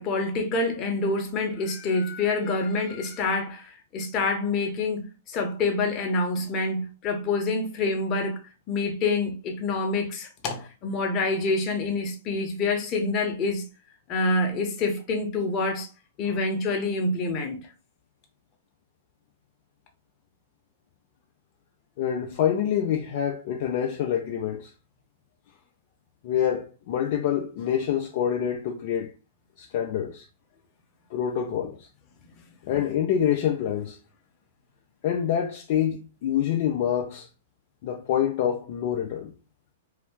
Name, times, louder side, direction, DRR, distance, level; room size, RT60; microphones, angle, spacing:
voice 1, 0.0-8.4 8.7-13.6 14.1-15.9 16.2-17.6, left 3 dB, 35° left, 0.9 m, -27 dB
voice 2, 22.0-24.7 26.2-29.1 29.6-30.3 31.1-31.9 32.6-34.0 35.0-37.3 37.8-39.3, left 9 dB, 50° left, 0.5 m, -26 dB
2.7 x 2.5 x 3.5 m
figure-of-eight pair, 110°, 0 cm